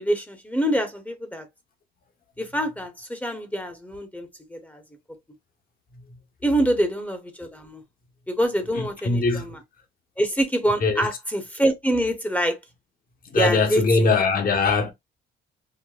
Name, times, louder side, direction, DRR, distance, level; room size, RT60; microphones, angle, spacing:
voice 1, 0.0-1.5 2.4-4.8 6.4-7.8 8.3-9.6 10.2-12.6 13.3-14.1, equal, 5° left, 0.8 m, -25 dB
voice 2, 8.7-9.5 10.8-11.1 13.3-14.9, left 3 dB, 45° left, 1.0 m, -21 dB
5.7 x 2.1 x 2.2 m
cardioid pair, 90°, 20 cm